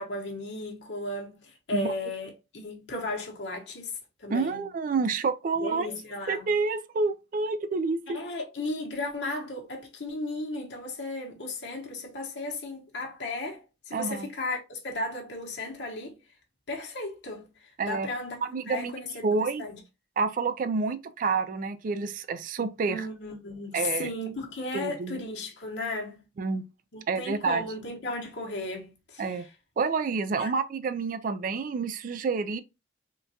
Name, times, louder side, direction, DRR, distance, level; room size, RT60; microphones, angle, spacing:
voice 1, 0.0-4.6 5.6-6.5 8.1-16.2 16.7-19.8 22.9-26.2 26.9-29.5 30.4-30.5, left 2 dB, 70° left, 0.9 m, -35 dB
voice 2, 4.3-5.9 6.3-8.2 13.9-14.3 17.8-18.1 18.4-18.9 19.2-19.6 20.2-23.1 23.7-24.1 24.7-25.2 26.4-26.6 27.1-27.6 29.2-29.5 29.8-32.6, right 4 dB, 45° right, 0.3 m, -28 dB
3.7 x 2.3 x 2.6 m
head